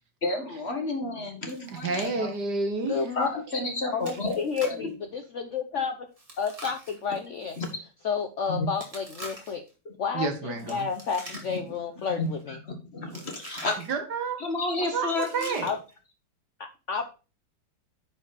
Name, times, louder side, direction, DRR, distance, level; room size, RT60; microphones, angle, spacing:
voice 1, 0.2-2.3 3.1-4.9 7.6-7.7 8.6-8.7 11.5-11.6 12.2-13.8 14.4-15.5, left 2 dB, 35° left, 1.7 m, -31 dB
Chewing mastication, 1.5-2.1 2.4-2.5 3.0-3.1 4.0-4.9 6.2-7.7 8.8-9.7 10.6-11.8 12.0-12.4 13.1-13.9 15.1-15.9, equal, 15° right, 2.3 m, -44 dB
voice 2, 1.7-3.0 10.1-10.9 13.9-14.4 14.8-15.8, right 4 dB, 55° right, 1.7 m, -30 dB
voice 3, 2.8-3.3 3.9-6.1 6.4-7.6 8.0-9.6 10.0-12.6 15.6-15.8 16.6-17.1, left 6 dB, 75° left, 0.6 m, -31 dB
9.8 x 5.1 x 4.1 m
omnidirectional pair, 2.2 m